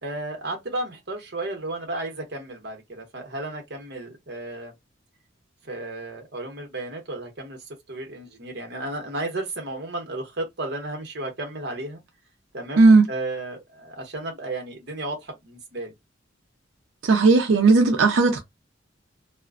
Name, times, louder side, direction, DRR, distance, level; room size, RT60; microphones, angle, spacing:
voice 1, 0.0-4.7 5.6-12.0 12.5-15.9, right 2 dB, 55° right, 0.8 m, -33 dB
voice 2, 12.8-13.1 17.0-18.4, right 3 dB, 85° right, 0.5 m, -16 dB
2.4 x 2.1 x 2.4 m
head